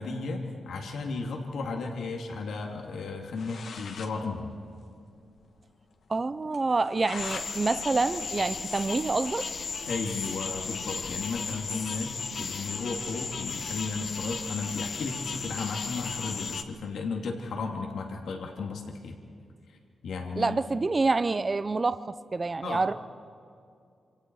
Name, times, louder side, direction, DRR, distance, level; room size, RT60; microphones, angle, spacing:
voice 1, 0.0-4.5 9.9-19.2 19.7-19.8 20.0-20.6 22.6-22.9, left 4 dB, 90° left, 1 dB, 2.7 m, -34 dB
sound 1, 3.3-4.1 4.5-4.6 4.8-4.9 5.3-5.4 5.8-5.9 6.5-7.5 7.9-9.2, left 5 dB, 70° left, 2.0 m, -43 dB
voice 2, 6.1-9.5 20.4-22.9, right 3 dB, 25° right, 13 dB, 0.5 m, -27 dB
sound 2, 7.2-16.6, left 5 dB, 50° left, 1.3 m, -35 dB
28.0 x 27.5 x 4.8 m, 2.4 s
wide cardioid pair, 135°, 0 cm